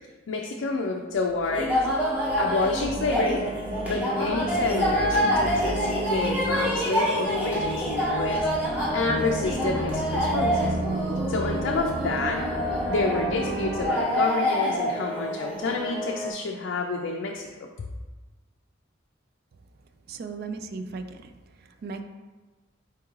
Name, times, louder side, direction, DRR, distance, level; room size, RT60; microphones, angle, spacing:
voice 1, 0.3-1.7 2.4-3.4 3.8-10.7 11.3-12.4 12.9-17.7, left 3 dB, 70° left, 0 dB, 0.4 m, -29 dB
sound 1, 1.3-13.9, right 1 dB, 70° right, 0.8 m, -33 dB
sound 2, 1.4-16.3, equal, 10° right, 0.9 m, -27 dB
voice 2, 20.1-21.3 21.6-22.0, right 4 dB, 50° right, 7 dB, 0.3 m, -36 dB
4.5 x 3.6 x 3.0 m, 1.3 s
head